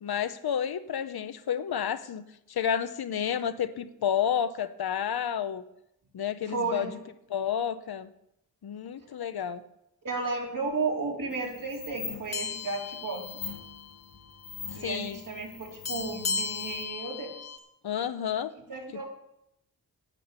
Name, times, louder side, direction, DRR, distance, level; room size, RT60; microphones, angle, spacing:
voice 1, 0.0-2.2 2.5-5.6 6.1-6.9 7.3-8.1 8.6-9.6 14.8-15.2 17.8-18.5, left 8 dB, 75° left, 12 dB, 0.8 m, -30 dB
voice 2, 6.5-6.9 10.0-13.2 14.7-17.5 18.7-19.0, right 3 dB, 55° right, -1 dB, 3.4 m, -33 dB
sound 1, 11.3-16.8, left 5 dB, 60° left, 1.4 m, -43 dB
sound 2, 12.3-14.0 14.3-14.5 15.9-17.6, left 5 dB, 40° left, 1.4 m, -36 dB
10.0 x 8.4 x 7.0 m, 0.80 s
wide cardioid pair, 85°, 38 cm